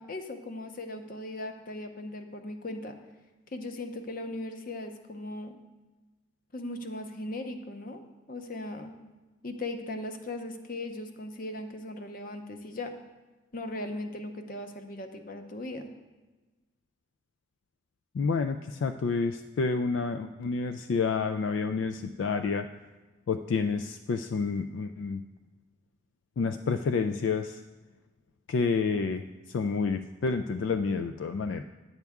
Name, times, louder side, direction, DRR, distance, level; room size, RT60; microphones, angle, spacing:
voice 1, 0.0-2.9 3.5-5.5 6.5-8.0 8.3-8.9 9.4-12.9 13.5-15.9, left 1 dB, 45° left, 6 dB, 0.7 m, -38 dB
voice 2, 18.1-22.7 23.3-25.2 26.4-27.6 28.5-31.6, left 4 dB, 70° left, 8 dB, 0.3 m, -29 dB
10.5 x 7.9 x 3.6 m, 1.2 s
head